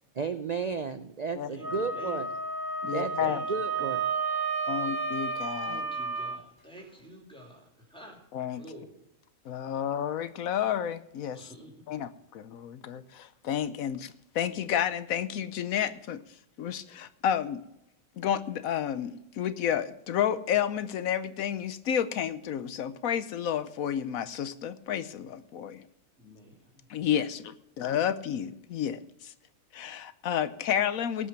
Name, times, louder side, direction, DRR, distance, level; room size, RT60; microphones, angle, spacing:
voice 1, 0.2-2.3 2.8-4.0, right 5 dB, 60° right, 10 dB, 0.4 m, -33 dB
voice 2, 1.5-2.3 3.2-4.0 5.6-8.2 8.5-9.0 11.3-12.0 26.2-26.8, right 1 dB, 5° left, 0 dB, 3.1 m, -49 dB
Wind instrument woodwind instrument, 1.6-6.4, right 4 dB, 20° right, 0.9 m, -32 dB
voice 3, 2.8-3.4 4.7-5.8 8.3-8.6 9.5-11.4 11.9-16.2 16.6-17.6 18.2-25.8 26.9-29.3 29.7-31.3, left 9 dB, 75° left, 13 dB, 1.1 m, -31 dB
18.0 x 6.1 x 5.9 m, 0.83 s
omnidirectional pair, 1.5 m